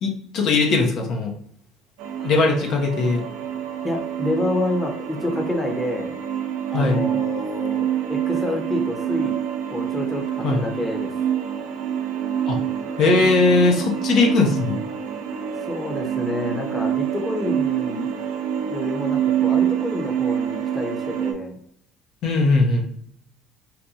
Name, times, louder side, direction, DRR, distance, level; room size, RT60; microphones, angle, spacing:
voice 1, 0.0-1.3 2.2-3.2 6.7-7.0 10.4-10.6 12.5-12.6 13.0-14.8 22.2-22.9, left 3 dB, 60° left, 1 dB, 0.6 m, -19 dB
sound 1, 2.0-21.3, right 9 dB, 80° right, 0.5 m, -26 dB
voice 2, 3.8-6.1 6.7-9.4 9.7-11.1 15.6-18.1 18.6-21.6, left 1 dB, 20° left, 2 dB, 0.8 m, -28 dB
4.1 x 2.2 x 2.7 m, 0.67 s
supercardioid pair, 85°, 0 cm